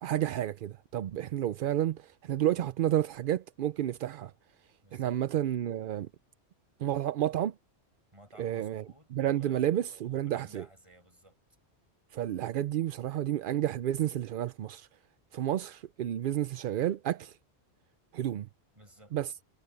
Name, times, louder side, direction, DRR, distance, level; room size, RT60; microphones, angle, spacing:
voice 1, 0.0-4.3 4.9-6.1 6.8-7.6 8.4-8.8 9.1-10.7 12.1-14.9 15.3-17.4 18.1-18.5 19.1-19.3, right 12 dB, 60° right, 0.6 m, -31 dB
voice 2, 4.8-5.2 8.1-11.4 18.7-19.2, right 1 dB, 25° right, 8.2 m, -56 dB
omnidirectional pair, 1.2 m